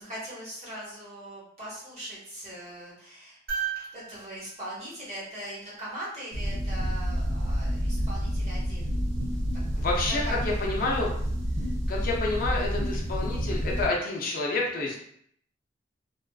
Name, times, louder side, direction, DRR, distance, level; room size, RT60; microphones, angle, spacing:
voice 1, 0.0-3.4 3.9-9.0 9.7-10.8 11.6-11.7, right 1 dB, 35° right, -7 dB, 1.1 m, -41 dB
sound 1, 3.5-5.8 7.8-7.9, right 7 dB, 55° right, 0.9 m, -37 dB
sound 2, 6.3-13.9, equal, 75° right, 0.5 m, -29 dB
voice 2, 9.8-10.2 10.6-11.1 11.9-15.0, left 3 dB, 50° left, -2 dB, 0.5 m, -29 dB
2.4 x 2.3 x 2.2 m, 0.66 s
head